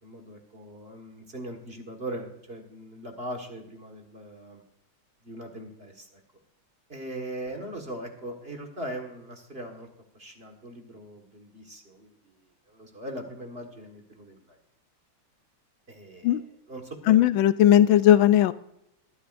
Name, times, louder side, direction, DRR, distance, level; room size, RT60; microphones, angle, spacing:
voice 1, 0.0-4.6 5.2-6.1 6.9-9.9 10.1-12.4 12.7-14.6 15.9-17.4, right 1 dB, 30° right, 3 dB, 1.8 m, -40 dB
voice 2, 17.1-18.5, left 11 dB, 80° left, 14 dB, 1.4 m, -18 dB
21.5 x 10.0 x 2.6 m, 0.76 s
omnidirectional pair, 2.2 m